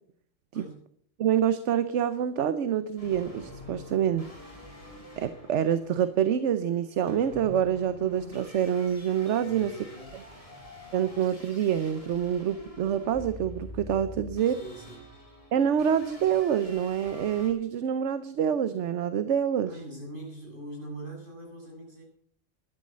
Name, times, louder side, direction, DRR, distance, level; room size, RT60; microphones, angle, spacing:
voice 1, 1.2-4.3 5.2-9.7 10.9-14.6 15.5-19.7, right 9 dB, 70° right, 12 dB, 1.1 m, -26 dB
sound 1, 3.0-17.5, left 1 dB, 25° left, 5.2 m, -46 dB
voice 2, 9.4-10.2 14.5-15.1 19.6-22.0, right 1 dB, 40° right, -3 dB, 8.1 m, -42 dB
12.5 x 12.0 x 7.4 m, 0.63 s
omnidirectional pair, 1.3 m